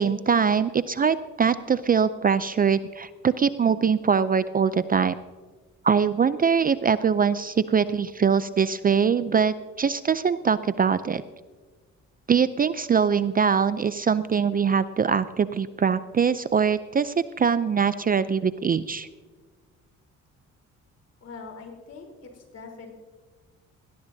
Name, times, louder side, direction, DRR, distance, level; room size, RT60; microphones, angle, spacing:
voice 1, 0.0-5.2 5.8-11.2 12.3-19.1, right 6 dB, 30° right, 14 dB, 0.4 m, -23 dB
voice 2, 21.2-22.9, left 4 dB, 55° left, 2 dB, 3.8 m, -43 dB
18.0 x 17.0 x 2.7 m, 1.4 s
cardioid pair, 90°, 30 cm